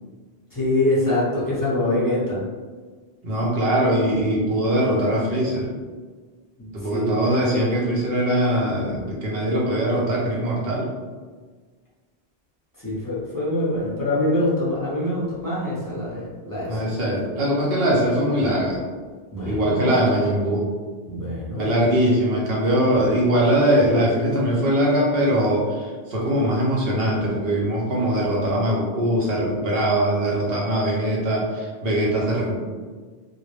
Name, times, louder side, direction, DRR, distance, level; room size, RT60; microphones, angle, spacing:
voice 1, 0.5-2.4 6.6-7.2 12.8-16.8 19.3-20.0 21.1-21.7, left 1 dB, 25° left, -8 dB, 0.6 m, -24 dB
voice 2, 3.2-5.7 6.7-10.9 16.7-18.8 19.5-20.7 21.5-32.6, right 1 dB, 70° right, -3 dB, 0.9 m, -21 dB
2.3 x 2.1 x 3.1 m, 1.4 s
omnidirectional pair, 1.1 m